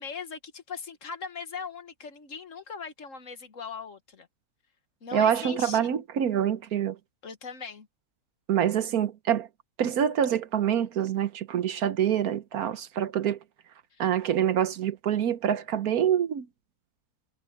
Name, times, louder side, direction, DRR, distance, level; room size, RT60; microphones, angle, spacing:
voice 1, 0.0-4.3 5.0-5.9 7.2-7.9 13.9-14.0, left 5 dB, 55° left, 1.7 m, -39 dB
voice 2, 5.1-7.0 8.5-9.5 9.8-13.4 14.0-16.5, right 9 dB, 70° right, 1.3 m, -26 dB
omnidirectional pair, 1.7 m